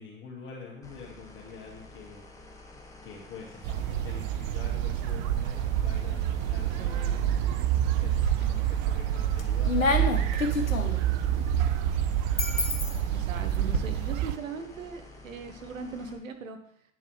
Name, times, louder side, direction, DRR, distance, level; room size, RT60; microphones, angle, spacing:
voice 1, 0.0-2.2 3.0-7.2 7.8-11.7, left 5 dB, 30° left, -3 dB, 1.9 m, -46 dB
sound 1, 0.8-16.2, left 2 dB, 10° left, 1.1 m, -49 dB
sound 2, 3.6-14.4, right 11 dB, 35° right, 0.4 m, -28 dB
voice 2, 6.8-7.4 13.1-16.6, right 5 dB, 75° right, 6 dB, 1.1 m, -39 dB
sound 3, 8.0-8.7 9.1-13.8, left 3 dB, 90° left, 0.9 m, -30 dB
9.0 x 7.1 x 3.2 m, 0.69 s
figure-of-eight pair, 80°, 40 cm